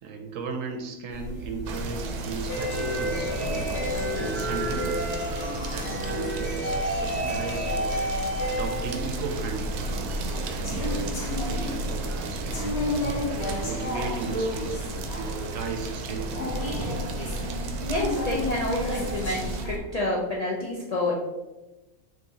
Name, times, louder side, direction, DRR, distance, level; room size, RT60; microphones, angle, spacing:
voice 1, 0.0-8.2 8.5-12.7 13.3-16.5, right 4 dB, 65° right, 3 dB, 0.9 m, -36 dB
sound 1, 1.1-19.8, left 1 dB, 50° left, 1.0 m, -31 dB
sound 2, 1.7-19.7, right 4 dB, 90° right, 1.1 m, -36 dB
voice 2, 17.8-21.1, left 1 dB, 70° left, -4 dB, 0.3 m, -28 dB
5.6 x 2.7 x 2.8 m, 1.1 s
omnidirectional pair, 1.6 m